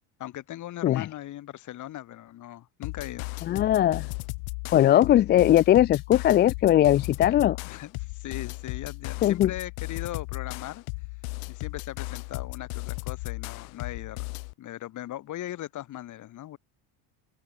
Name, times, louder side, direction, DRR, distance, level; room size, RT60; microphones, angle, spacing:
voice 1, 0.2-3.3 7.3-7.4 7.6-10.8 11.5-14.3 14.6-16.6, left 13 dB, 40° left, 7.0 m, -39 dB
sound 1, 2.8-14.5, left 40 dB or more, 85° left, 3.5 m, -36 dB
voice 2, 3.5-4.1 4.7-7.6 9.2-9.5, left 12 dB, 25° left, 0.4 m, -20 dB
open air
cardioid pair, 165°, 45 cm